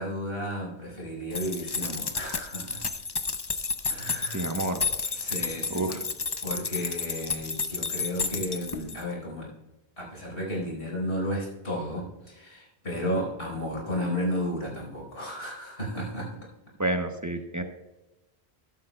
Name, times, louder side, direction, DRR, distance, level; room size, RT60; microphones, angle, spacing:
voice 1, 0.0-2.8 3.9-4.5 5.2-6.0 6.4-9.5 10.0-16.5, equal, 80° left, -2 dB, 4.6 m, -33 dB
sound 1, 1.3-9.1, left 4 dB, 30° left, 0.5 m, -32 dB
voice 2, 4.3-5.1 5.7-6.0 16.8-17.6, right 2 dB, 20° right, 5 dB, 0.9 m, -30 dB
14.0 x 11.5 x 2.2 m, 0.99 s
omnidirectional pair, 1.1 m